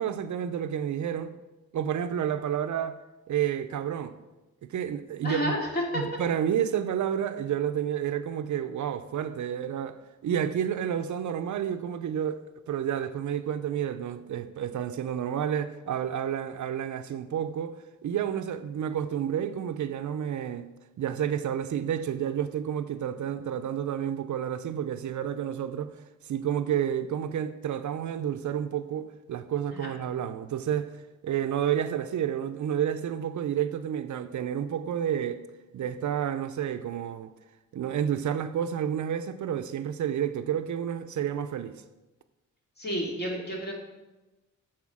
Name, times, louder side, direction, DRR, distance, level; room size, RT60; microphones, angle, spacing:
voice 1, 0.0-1.4 1.7-3.0 3.3-4.2 4.6-5.6 5.9-20.7 21.0-25.9 26.2-31.0 31.2-35.4 35.7-37.3 37.7-41.8, right 9 dB, 70° right, 0.6 m, -30 dB
voice 2, 5.2-6.0 29.7-29.9 42.8-43.7, equal, 30° left, 2.6 m, -30 dB
8.3 x 4.4 x 7.3 m
wide cardioid pair, 110°, 31 cm